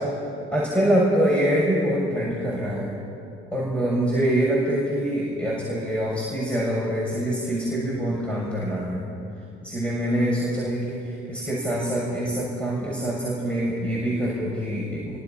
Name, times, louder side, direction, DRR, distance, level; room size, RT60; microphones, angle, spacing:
voice 1, 0.5-2.9 3.5-9.0 9.6-15.2, right 1 dB, 5° left, -5 dB, 7.0 m, -25 dB
28.0 x 24.5 x 5.9 m, 2.6 s
figure-of-eight pair, 45°, 35 cm